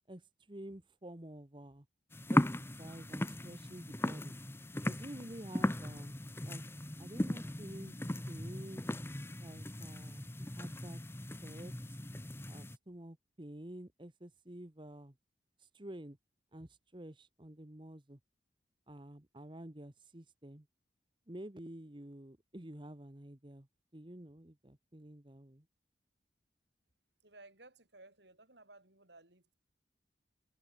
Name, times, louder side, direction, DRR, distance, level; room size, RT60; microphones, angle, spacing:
voice 1, 0.1-1.8 2.3-4.3 4.9-6.1 6.4-6.6 7.0-8.9 9.4-10.3 10.5-11.0 11.4-12.0 12.4-15.1 15.6-16.2 16.5-18.2 18.9-20.7 21.3-23.7 23.9-25.6, right 1 dB, 25° right, 1.3 m, -50 dB
sound 1, 2.1-12.8, left 1 dB, 15° left, 1.0 m, -37 dB
voice 2, 27.2-29.5, right 2 dB, 65° right, 8.0 m, -58 dB
head